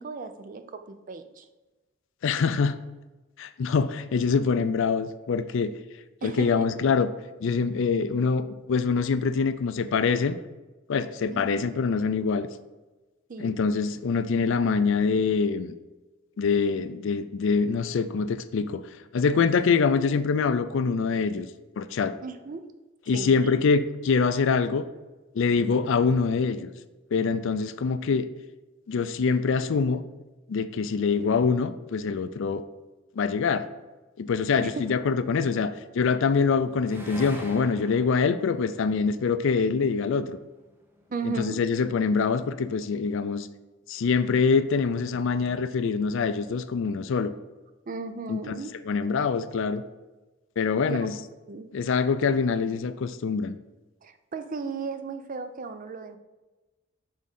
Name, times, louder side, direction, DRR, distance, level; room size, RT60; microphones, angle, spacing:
voice 1, 0.0-1.5 6.2-6.7 11.3-11.4 13.3-13.7 22.2-22.7 23.1-23.5 34.6-34.8 41.1-41.7 47.9-48.7 50.9-51.0 51.5-51.7 54.0-56.2, right 4 dB, 40° right, 9 dB, 0.5 m, -35 dB
voice 2, 2.2-2.8 3.4-5.7 6.2-7.1 7.4-10.4 10.9-12.5 13.4-15.7 16.4-18.8 19.1-21.5 21.8-22.1 23.1-24.8 25.3-26.7 27.1-28.3 28.9-30.0 30.5-32.6 33.2-33.7 34.2-40.4 41.2-43.5 43.9-47.3 48.3-48.6 48.9-49.8 50.6-51.1 51.7-53.6, left 5 dB, 65° left, 12 dB, 0.4 m, -24 dB
sound 1, 36.3-39.9 40.7-41.5, equal, 10° right, 0.8 m, -44 dB
6.3 x 3.7 x 5.4 m, 1.2 s
head